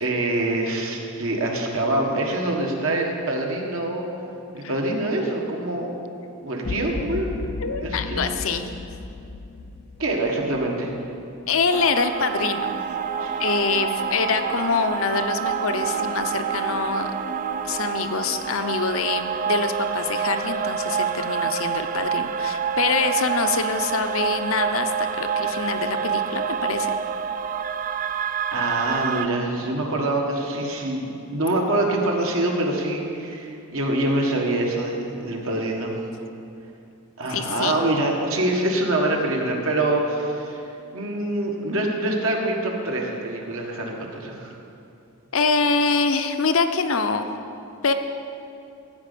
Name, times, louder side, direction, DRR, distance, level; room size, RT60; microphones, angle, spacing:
voice 1, 0.0-4.0 4.5-5.9 6.4-7.3 7.8-8.3 10.0-11.0 13.2-13.3 28.5-36.0 37.2-40.6 40.9-44.5, right 1 dB, 65° right, 0 dB, 1.6 m, -25 dB
sound 1, 6.6-11.0, left 3 dB, 35° left, 0.4 m, -34 dB
voice 2, 7.6-8.6 11.5-12.7 13.4-17.1 17.6-27.0 37.3-37.8 45.3-47.4 47.8-47.9, left 4 dB, 65° left, 8 dB, 0.7 m, -25 dB
sound 2, 11.7-29.3, right 7 dB, 35° right, 0.4 m, -27 dB
14.0 x 5.3 x 8.4 m, 2.7 s
head